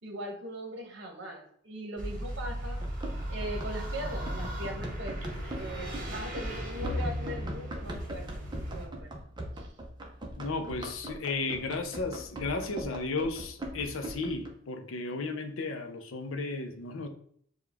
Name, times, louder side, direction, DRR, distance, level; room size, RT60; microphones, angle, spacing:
voice 1, 0.0-2.8 3.3-5.2 5.5-9.1 9.6-9.7, right 1 dB, 60° right, 2 dB, 1.0 m, -40 dB
sound 1, 2.0-8.9, equal, 45° right, 1.3 m, -36 dB
Run, 2.8-14.5, right 1 dB, 20° right, 0.6 m, -41 dB
voice 2, 10.4-17.1, left 3 dB, 85° left, 6 dB, 0.6 m, -34 dB
6.6 x 2.3 x 3.4 m, 0.63 s
head